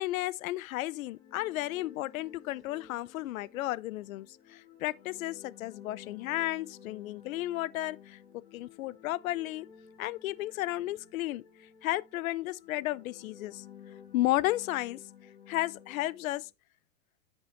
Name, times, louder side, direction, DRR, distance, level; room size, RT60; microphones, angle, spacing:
voice 1, 0.0-8.2 8.5-9.7 10.0-11.4 11.8-13.6 14.1-15.0 15.5-16.5, left 16 dB, 85° left, 0.7 m, -33 dB
sound 1, 0.8-16.5, left 8 dB, 50° left, 4.1 m, -54 dB
10.0 x 6.7 x 3.1 m
supercardioid pair, 180°, 41 cm